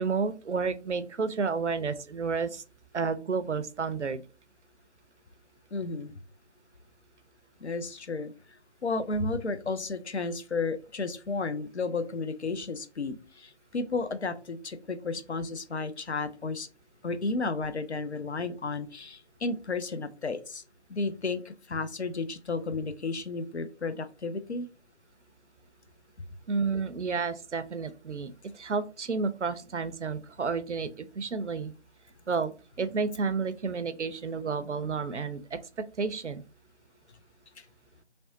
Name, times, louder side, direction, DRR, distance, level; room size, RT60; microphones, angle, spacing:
voice 1, 0.0-2.6 2.9-4.2 26.5-31.7 32.3-36.4, right 5 dB, 80° right, 12 dB, 0.5 m, -31 dB
voice 2, 5.7-6.1 7.6-8.3 8.8-16.7 17.0-20.6 20.9-24.7, left 3 dB, 70° left, 10 dB, 0.6 m, -33 dB
3.2 x 2.6 x 2.6 m, 0.34 s
figure-of-eight pair, 165°, 35 cm